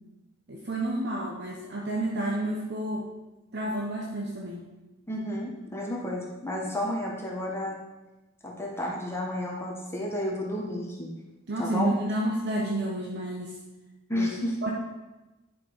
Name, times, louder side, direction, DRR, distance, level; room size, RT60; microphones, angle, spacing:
voice 1, 0.5-3.1 3.5-4.7 11.5-13.6 14.1-14.3 14.6-14.7, right 1 dB, 60° right, -2 dB, 1.1 m, -30 dB
voice 2, 5.1-7.8 8.4-11.1 11.6-11.9 14.1-14.5, left 1 dB, 15° left, -2 dB, 1.3 m, -31 dB
9.9 x 6.0 x 4.7 m, 1.1 s
head